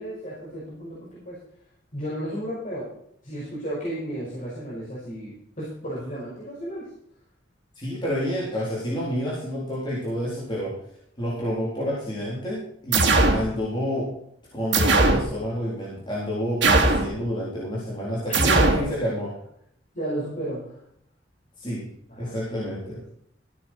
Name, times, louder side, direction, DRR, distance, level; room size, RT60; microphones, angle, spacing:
voice 1, 0.0-1.4 1.9-2.9 3.2-6.9 18.3-19.1 19.9-20.8 22.1-23.1, equal, 40° left, -8 dB, 5.5 m, -33 dB
voice 2, 7.8-10.7 11.2-14.1 14.5-19.3 21.6-21.9 22.2-23.0, equal, 25° left, -7 dB, 4.1 m, -29 dB
sound 1, 12.9-13.4 14.7-15.3 16.6-17.1 18.3-18.8, right 2 dB, 65° right, 2.5 m, -19 dB
15.0 x 9.5 x 4.6 m, 0.68 s
head